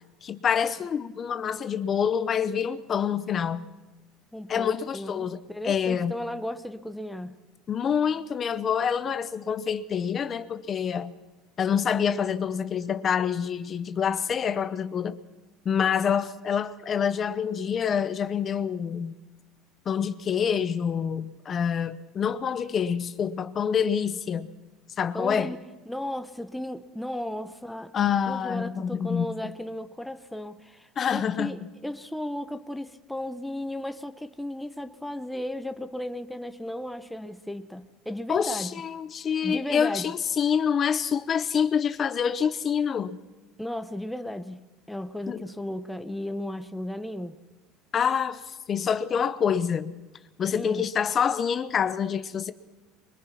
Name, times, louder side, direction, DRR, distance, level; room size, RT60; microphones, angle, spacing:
voice 1, 0.2-3.7 4.5-6.1 7.7-11.1 11.6-15.2 15.6-19.1 19.9-24.5 25.0-25.5 27.9-29.3 31.0-31.6 38.3-43.2 45.3-45.4 47.9-49.9 50.4-52.5, left 7 dB, 35° left, 0.9 m, -26 dB
voice 2, 4.3-7.4 25.1-27.9 28.3-38.7 39.4-40.1 43.6-47.4 50.5-50.9, left 1 dB, 5° left, 0.9 m, -35 dB
23.0 x 21.5 x 5.9 m
supercardioid pair, 125°, 0 cm